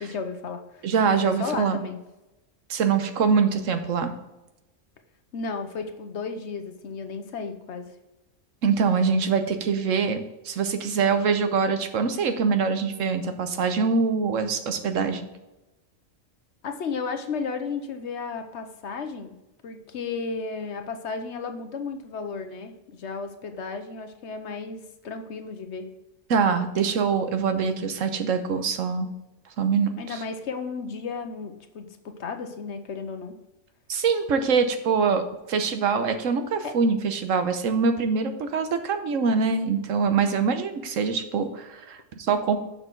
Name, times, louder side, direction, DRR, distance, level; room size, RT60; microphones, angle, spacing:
voice 1, 0.0-2.0 5.3-7.9 16.6-19.3 19.6-25.9 30.0-31.9 32.2-33.3 36.6-36.7, left 5 dB, 65° left, 7 dB, 1.1 m, -34 dB
voice 2, 0.8-1.8 2.7-4.1 8.6-15.3 26.3-29.1 29.6-30.2 33.9-35.2 35.5-42.6, right 5 dB, 80° right, 8 dB, 1.2 m, -24 dB
6.6 x 5.8 x 4.6 m, 0.97 s
omnidirectional pair, 1.3 m